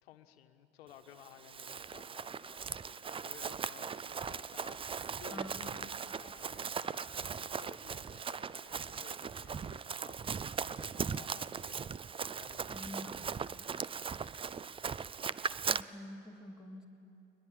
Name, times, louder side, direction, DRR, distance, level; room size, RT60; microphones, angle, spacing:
voice 1, 0.0-12.8 14.2-14.4, left 11 dB, 80° left, 8 dB, 1.3 m, -57 dB
Run, 1.2-15.8, right 6 dB, 20° right, 0.4 m, -39 dB
voice 2, 5.3-5.8 12.7-13.4 15.7-16.8, left 1 dB, ahead, 2 dB, 2.7 m, -47 dB
21.5 x 21.0 x 8.7 m, 2.8 s
hypercardioid pair, 75°, 30 cm